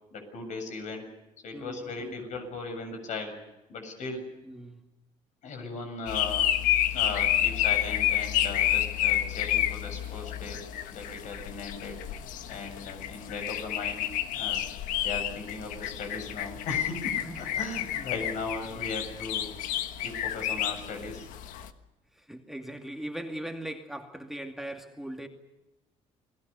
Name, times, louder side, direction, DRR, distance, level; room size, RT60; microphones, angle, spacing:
voice 1, 0.1-1.1 1.4-3.4 3.7-4.3 5.4-6.5 6.9-10.6 10.9-12.0 12.5-14.6 15.0-19.5 20.0-21.3, left 3 dB, 70° left, 5 dB, 7.3 m, -37 dB
voice 2, 1.5-2.2 4.4-4.8 17.2-17.5 18.1-18.3 22.1-25.3, right 1 dB, ahead, 3 dB, 2.4 m, -40 dB
sound 1, 6.1-21.7, left 12 dB, 90° left, 1.4 m, -30 dB
29.0 x 19.5 x 6.9 m, 0.99 s
cardioid pair, 100°, 13 cm